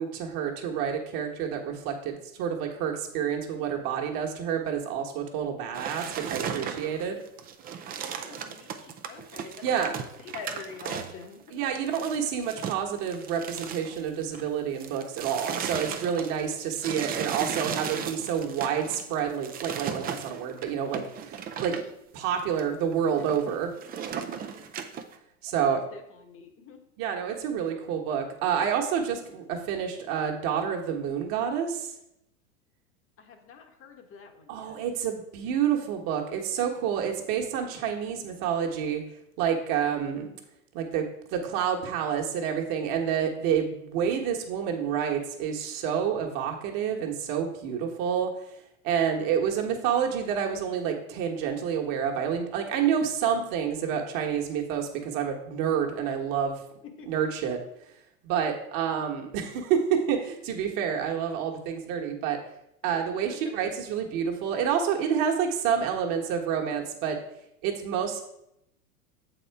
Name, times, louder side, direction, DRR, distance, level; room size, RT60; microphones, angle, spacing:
voice 1, 0.0-7.2 9.6-10.0 11.5-21.7 22.1-23.7 25.4-25.8 27.0-31.9 34.5-39.0 39.4-40.3 40.7-41.0 41.3-48.6 48.8-56.6 57.0-57.6 58.2-62.4 62.8-67.2 67.6-68.2, right 8 dB, 50° right, 2 dB, 1.4 m, -28 dB
sound 1, 5.7-14.5 14.8-21.9 22.4-22.6 22.9-25.2, right 7 dB, 20° right, 0.5 m, -36 dB
voice 2, 7.9-11.6 24.2-24.7 25.5-26.8 33.2-34.8 57.0-57.1 62.8-63.4, left 5 dB, 30° left, 5 dB, 1.2 m, -46 dB
7.1 x 4.3 x 4.7 m, 0.81 s
hypercardioid pair, 100°, 43 cm